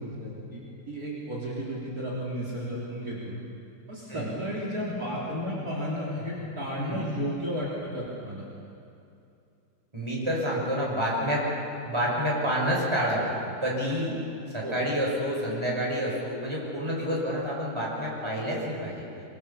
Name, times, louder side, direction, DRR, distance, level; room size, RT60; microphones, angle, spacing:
voice 1, 0.0-3.3 3.9-8.4 14.6-14.8, equal, 50° right, -5 dB, 4.1 m, -33 dB
voice 2, 9.9-11.4 11.8-13.3 13.6-14.2 14.5-19.0, equal, 15° right, -3 dB, 5.8 m, -28 dB
24.5 x 24.0 x 7.1 m, 2.6 s
omnidirectional pair, 2.1 m